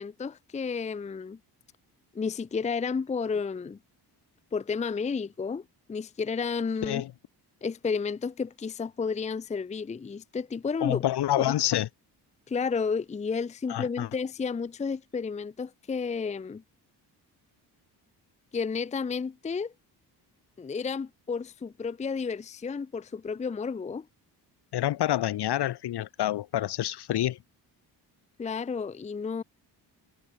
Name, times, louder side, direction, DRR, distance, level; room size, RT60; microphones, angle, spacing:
voice 1, 0.0-1.4 2.1-3.8 4.5-7.0 7.6-11.0 11.4-11.5 12.5-16.6 18.5-19.7 20.6-24.1 28.4-29.4, left 5 dB, 15° left, 0.6 m, -32 dB
voice 2, 10.8-11.9 13.7-14.1 24.7-27.4, left 13 dB, 70° left, 2.5 m, -27 dB
cardioid pair, 150°, 40 cm